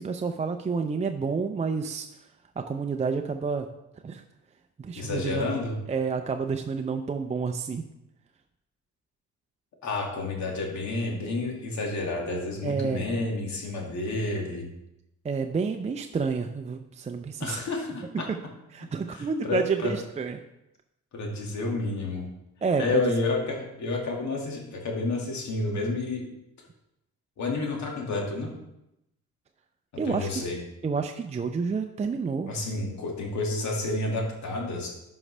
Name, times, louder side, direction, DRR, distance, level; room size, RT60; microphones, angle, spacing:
voice 1, 0.0-2.1 2.6-3.7 4.0-4.2 4.8-5.5 5.9-7.8 12.6-13.1 15.2-17.6 18.7-20.4 22.6-23.1 30.0-30.4 30.8-32.5, right 5 dB, 25° right, 5 dB, 0.5 m, -29 dB
voice 2, 5.0-5.7 9.8-14.7 17.4-18.5 19.1-19.9 21.1-22.2 22.8-26.2 27.4-28.5 30.0-30.6 32.5-34.9, left 2 dB, 65° left, 0 dB, 2.2 m, -30 dB
11.0 x 5.4 x 3.3 m, 0.87 s
cardioid pair, 90°, 30 cm